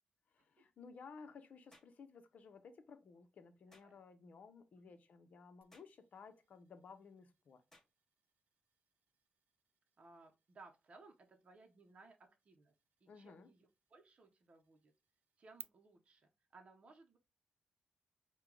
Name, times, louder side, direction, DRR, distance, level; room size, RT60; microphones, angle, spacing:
voice 1, 0.3-7.6 13.1-13.5, left 5 dB, 60° left, 0.7 m, -57 dB
sound 1, 1.7-2.0 3.7-3.9 5.7-6.0 7.7-7.9, left 1 dB, 15° left, 1.0 m, -66 dB
voice 2, 3.7-4.0 4.8-4.9 10.0-12.2 12.4-12.7 13.0-14.9 15.4-17.2, right 3 dB, 45° right, 0.7 m, -62 dB
sound 2, 5.6-15.6, right 9 dB, 85° right, 0.3 m, -64 dB
4.5 x 2.2 x 3.8 m
wide cardioid pair, 120°, 3 cm